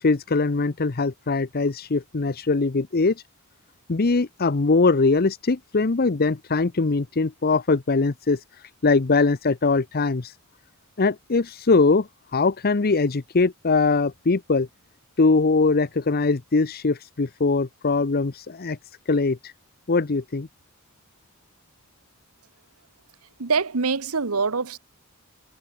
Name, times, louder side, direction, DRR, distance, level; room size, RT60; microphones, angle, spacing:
voice 1, 0.0-3.1 3.9-8.4 8.8-10.3 11.0-14.7 15.2-18.8 19.1-19.5 19.9-20.5, left 3 dB, 45° left, 0.7 m, -22 dB
voice 2, 23.4-24.8, right 4 dB, 85° right, 1.2 m, -24 dB
head